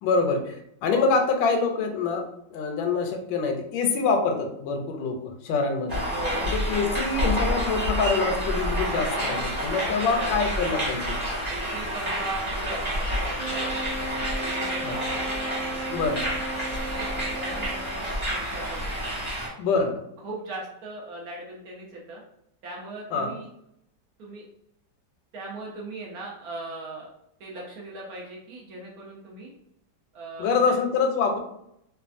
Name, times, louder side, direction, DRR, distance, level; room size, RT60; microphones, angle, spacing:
voice 1, 0.0-6.1 6.5-11.2 14.8-14.9 15.9-16.2 19.6-20.0 23.1-23.3 30.4-31.4, left 4 dB, 80° left, 4 dB, 1.3 m, -25 dB
sound 1, 5.9-19.5, equal, 20° right, 0.8 m, -29 dB
voice 2, 6.0-6.5 8.6-9.0 9.8-10.5 11.5-14.0 14.4-15.3 15.6-16.4 16.8-18.9 20.2-22.2 22.6-23.5 24.2-24.4 25.3-27.1 27.4-29.5 30.1-30.5, right 2 dB, 65° right, -2 dB, 0.9 m, -39 dB
Wind instrument woodwind instrument, 13.4-18.0, right 2 dB, 85° right, 1.4 m, -36 dB
3.2 x 2.2 x 2.5 m, 0.76 s
omnidirectional pair, 2.1 m